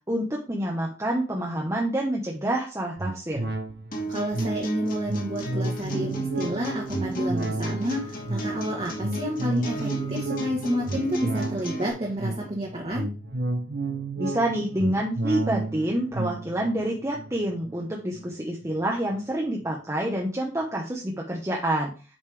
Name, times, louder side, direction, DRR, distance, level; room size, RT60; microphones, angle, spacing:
voice 1, 0.1-3.5 14.2-21.9, right 1 dB, 15° right, -2 dB, 1.0 m, -27 dB
sound 1, 3.0-18.7 19.1-19.2, right 2 dB, 55° right, 0.9 m, -32 dB
sound 2, 3.9-11.9, right 1 dB, 45° left, 2.1 m, -33 dB
voice 2, 4.1-13.1, equal, 30° right, -3 dB, 1.4 m, -30 dB
8.4 x 5.2 x 3.4 m, 0.35 s
head